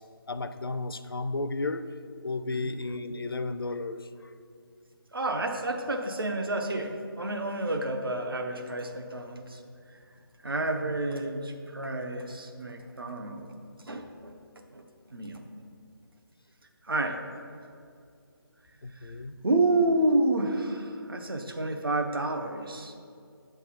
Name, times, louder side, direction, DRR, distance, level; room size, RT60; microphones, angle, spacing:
voice 1, 0.3-1.8 2.2-4.3 10.8-10.9 18.8-19.3, left 3 dB, 65° left, 11 dB, 0.4 m, -33 dB
voice 2, 5.1-9.6 9.9-10.0 10.4-14.4 14.7-14.8 15.1-15.5 16.8-17.2 19.0-19.2 19.4-22.9, right 2 dB, 65° right, 4 dB, 0.8 m, -29 dB
7.7 x 3.5 x 5.7 m, 2.4 s
figure-of-eight pair, 155°, 13 cm